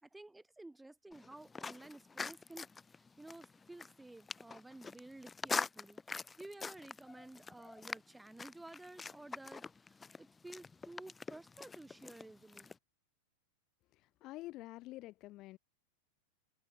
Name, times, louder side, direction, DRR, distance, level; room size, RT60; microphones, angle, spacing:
voice 1, 0.0-12.7, right 2 dB, 5° right, 3.4 m, -53 dB
sound 1, 1.1-12.8, left 4 dB, 15° left, 0.5 m, -45 dB
voice 2, 13.9-15.6, left 18 dB, 40° left, 1.7 m, -48 dB
figure-of-eight pair, 90°, 0 cm